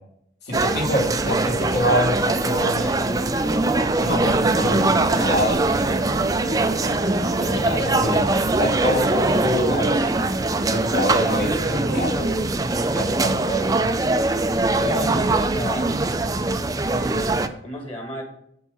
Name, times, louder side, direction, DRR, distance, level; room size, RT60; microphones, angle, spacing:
voice 1, 0.5-3.2 4.0-6.1 6.9-10.3 10.7-12.5 12.9-13.7, equal, 60° left, -2 dB, 3.4 m, -26 dB
sound 1, 0.5-17.5, right 2 dB, 20° right, 0.5 m, -22 dB
sound 2, 3.1-12.4, right 2 dB, 60° right, 0.8 m, -35 dB
voice 2, 14.7-15.9 16.9-18.2, equal, 30° left, 2 dB, 2.5 m, -33 dB
7.5 x 7.3 x 5.5 m, 0.73 s
head